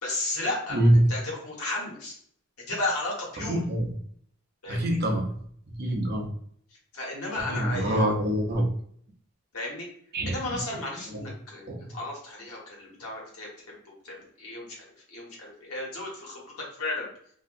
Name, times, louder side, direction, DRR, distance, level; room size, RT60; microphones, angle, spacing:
voice 1, 0.0-0.8 1.1-2.1 2.7-3.6 4.6-5.0 6.9-8.0 9.5-9.9 10.3-13.5 13.8-17.1, left 2 dB, 80° left, -3 dB, 1.3 m, -34 dB
voice 2, 3.5-3.9 4.7-5.3 5.8-6.3 7.5-8.7 10.1-10.3 11.1-11.2 11.7-11.8, right 1 dB, 45° right, 1 dB, 0.7 m, -24 dB
3.0 x 2.8 x 2.5 m, 0.64 s
head